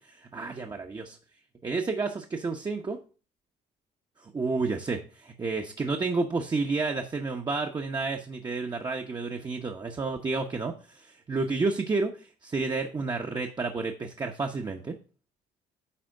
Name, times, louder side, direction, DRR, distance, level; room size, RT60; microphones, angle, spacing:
voice 1, 0.3-1.2 1.6-3.0 4.2-12.1 12.5-14.9, right 3 dB, 25° right, 2 dB, 1.0 m, -30 dB
9.9 x 3.5 x 6.4 m, 0.36 s
cardioid pair, 110°, 17 cm